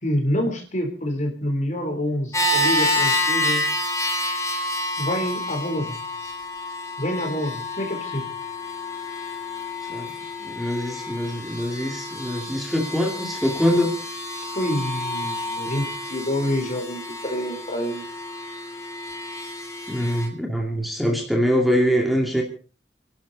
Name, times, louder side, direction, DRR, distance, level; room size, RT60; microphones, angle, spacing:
voice 1, 0.0-3.6 5.0-6.0 7.0-8.3 14.5-18.0, equal, 40° left, 5 dB, 3.7 m, -27 dB
sound 1, 2.3-20.3, left 1 dB, 15° left, 3.3 m, -29 dB
voice 2, 10.4-13.9 19.9-22.4, equal, ahead, 1 dB, 2.5 m, -23 dB
30.0 x 11.5 x 4.1 m, 0.38 s
head